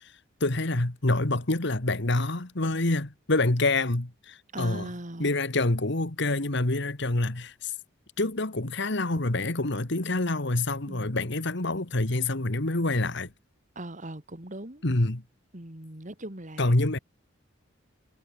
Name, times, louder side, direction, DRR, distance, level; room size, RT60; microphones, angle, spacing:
voice 1, 0.4-4.9 5.2-7.7 8.2-13.3 14.8-15.2 16.6-17.0, left 2 dB, 60° left, 1.9 m, -26 dB
voice 2, 4.5-5.3 10.9-11.2 13.7-14.8 15.5-16.7, right 1 dB, 40° right, 2.9 m, -39 dB
head